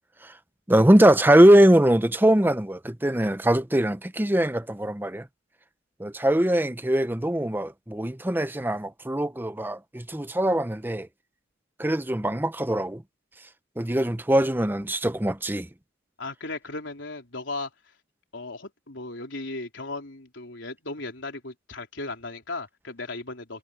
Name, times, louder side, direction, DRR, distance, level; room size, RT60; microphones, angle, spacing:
voice 1, 0.7-5.2 6.0-11.1 11.8-13.0 13.8-15.7, right 1 dB, 10° right, 0.7 m, -21 dB
voice 2, 16.2-17.9 18.3-23.6, left 2 dB, 75° left, 3.8 m, -36 dB
head